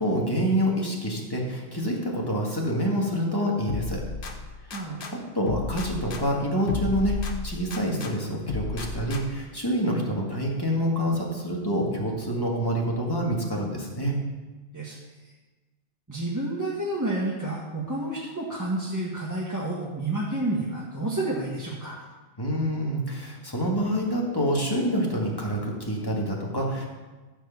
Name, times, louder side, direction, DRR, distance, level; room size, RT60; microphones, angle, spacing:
voice 1, 0.0-4.0 4.7-4.8 5.1-7.2 7.4-14.2 22.4-26.9, equal, 20° left, -2 dB, 2.0 m, -27 dB
sound 1, 3.7-5.1 5.5-8.1 8.5-9.5, left 3 dB, 50° left, 1.1 m, -33 dB
voice 2, 4.7-5.0 14.7-14.9 16.1-21.9, right 2 dB, 15° right, -6 dB, 1.4 m, -30 dB
13.5 x 4.7 x 7.1 m, 1.3 s
omnidirectional pair, 1.2 m